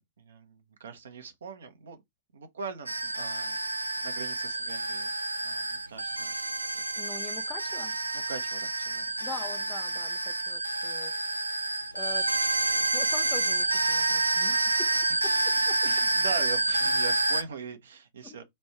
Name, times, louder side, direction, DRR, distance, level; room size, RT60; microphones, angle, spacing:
voice 1, 0.0-2.0 2.3-5.1 5.4-7.0 8.1-9.0 9.9-10.0 15.0-15.1 15.8-18.4, right 5 dB, 65° right, 0.8 m, -41 dB
sound 1, 2.9-17.4, right 2 dB, 85° right, 0.4 m, -28 dB
voice 2, 6.7-8.0 9.2-12.3 12.7-15.8 18.2-18.4, left 5 dB, 20° left, 0.6 m, -44 dB
3.2 x 2.6 x 4.4 m
figure-of-eight pair, 100°, 0 cm